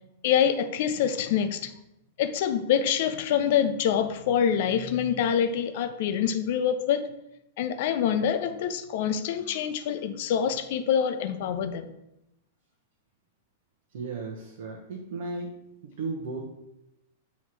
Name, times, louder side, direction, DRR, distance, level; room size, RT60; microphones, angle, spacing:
voice 1, 0.2-1.7 2.2-7.1 7.6-11.9, left 8 dB, 60° left, 9 dB, 0.6 m, -26 dB
voice 2, 13.9-16.4, right 3 dB, 65° right, -1 dB, 0.9 m, -35 dB
7.0 x 3.1 x 4.5 m, 0.85 s
hypercardioid pair, 110°, 0 cm